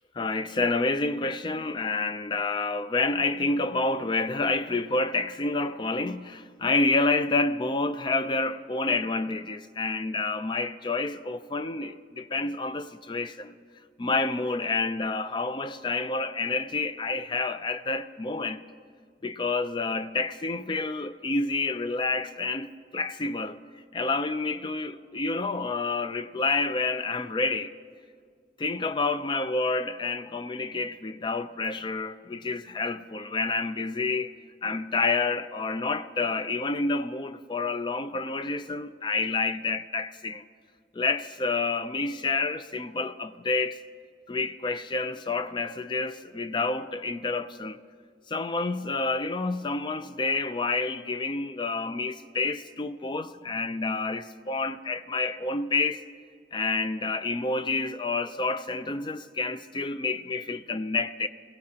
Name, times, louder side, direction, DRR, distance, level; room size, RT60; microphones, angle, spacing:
voice 1, 0.2-13.5 14.0-18.6 19.2-23.6 23.9-27.7 28.6-34.3 34.6-40.4 40.9-43.8 44.3-47.8 48.3-56.0 56.5-61.3, left 3 dB, 25° left, 0.4 m, -29 dB
21.0 x 16.0 x 2.8 m
head